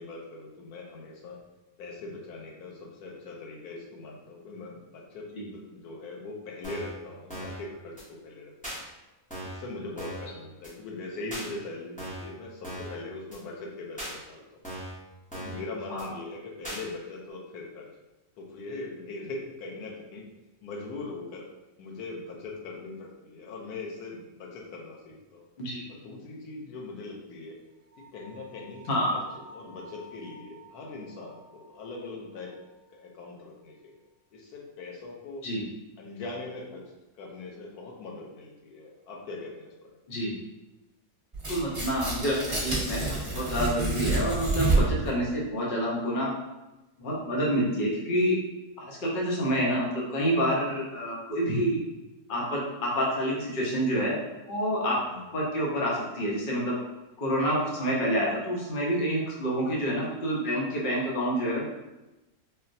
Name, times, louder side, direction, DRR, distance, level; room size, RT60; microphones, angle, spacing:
voice 1, 0.0-1.4 1.8-5.3 5.5-8.7 9.4-14.4 15.3-17.9 18.4-20.2 20.6-21.4 21.8-25.4 25.9-27.6 28.1-29.2 29.5-32.5 32.9-34.0 34.3-35.4 36.0-36.8 37.1-40.0 55.0-55.3, left 3 dB, 85° left, -1 dB, 1.2 m, -41 dB
sound 1, 6.6-7.0 7.3-7.6 8.0-8.1 8.6-8.8 9.3-9.6 10.0-10.3 10.6-10.7 11.3-11.5 12.0-12.3 12.6-13.0 13.3-13.4 14.0-14.1 14.6-15.0 15.3-15.6 16.0-16.1 16.6-16.8, right 1 dB, 10° left, 0.6 m, -38 dB
sound 2, 27.9-33.0, right 1 dB, 85° right, 1.1 m, -52 dB
Tearing, 41.3-45.1, right 3 dB, 20° right, 1.1 m, -27 dB
voice 2, 41.5-46.3 47.0-48.4 48.8-51.8 52.3-54.2 54.5-55.0 55.3-56.8 57.2-61.7, equal, 45° left, -4 dB, 0.8 m, -28 dB
4.0 x 2.1 x 2.6 m, 1.0 s
omnidirectional pair, 1.6 m